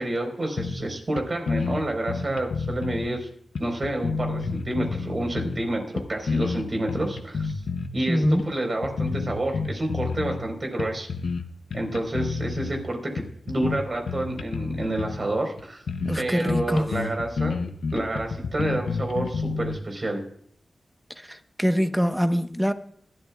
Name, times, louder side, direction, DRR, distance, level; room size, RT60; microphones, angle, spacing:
voice 1, 0.0-3.3 3.6-7.5 7.9-11.1 11.7-15.8 16.2-17.6 17.9-20.2, right 1 dB, 45° right, 4.4 m, -29 dB
sound 1, 0.6-1.2 1.5-3.1 3.5-5.6 6.0-7.9 8.2-8.4 8.8-10.5 10.8-11.4 11.7-12.8 13.2-15.2 15.6-15.7 15.9-16.2 16.5-19.8, left 4 dB, 85° left, 0.8 m, -29 dB
voice 2, 8.1-8.4 16.0-16.9 21.2-22.7, equal, 5° right, 1.1 m, -24 dB
21.0 x 12.5 x 2.4 m
cardioid pair, 65°, 0 cm